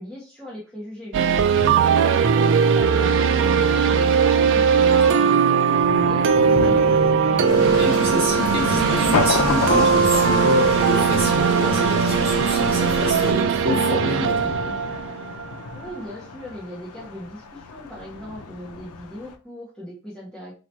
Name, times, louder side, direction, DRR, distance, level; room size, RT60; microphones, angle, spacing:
voice 1, 0.0-1.5 1.8-3.6 3.9-6.8 15.7-20.6, equal, 5° left, 1.1 m, -38 dB
sound 1, 1.1-16.0, right 6 dB, 60° right, 0.4 m, -19 dB
voice 2, 1.5-1.9 7.8-14.6, left 1 dB, 25° right, 1.7 m, -27 dB
Thunder, 3.2-19.4, left 4 dB, 90° left, 0.5 m, -32 dB
sound 2, 7.5-13.3, left 3 dB, 65° left, 1.0 m, -29 dB
2.9 x 2.8 x 4.4 m
head